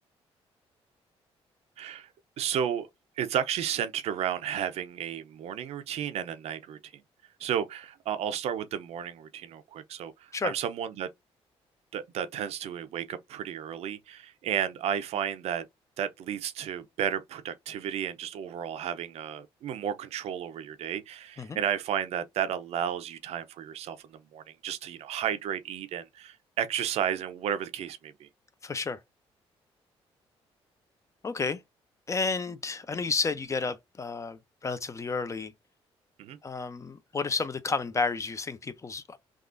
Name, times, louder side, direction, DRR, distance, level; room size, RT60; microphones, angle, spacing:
voice 1, 1.8-2.1 2.4-2.9 3.2-7.0 7.4-11.1 11.9-15.7 16.0-28.3 36.2-36.4, right 9 dB, 75° right, 0.5 m, -33 dB
voice 2, 28.6-29.0 31.2-31.6 32.1-35.5 36.4-39.2, left 4 dB, 30° left, 0.5 m, -31 dB
3.6 x 2.4 x 2.5 m
cardioid pair, 100°, 11 cm